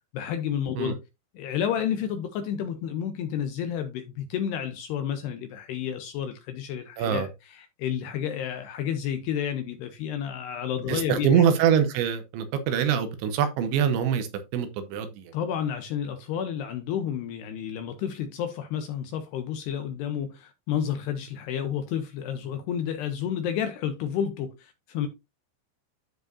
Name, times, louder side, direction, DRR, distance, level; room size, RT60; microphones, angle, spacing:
voice 1, 0.1-1.0 1.4-11.5 15.3-25.1, left 9 dB, 85° left, 2.4 m, -31 dB
voice 2, 7.0-7.3 10.9-14.3 14.5-15.3, right 8 dB, 80° right, 3.1 m, -24 dB
13.0 x 4.8 x 2.6 m
omnidirectional pair, 5.5 m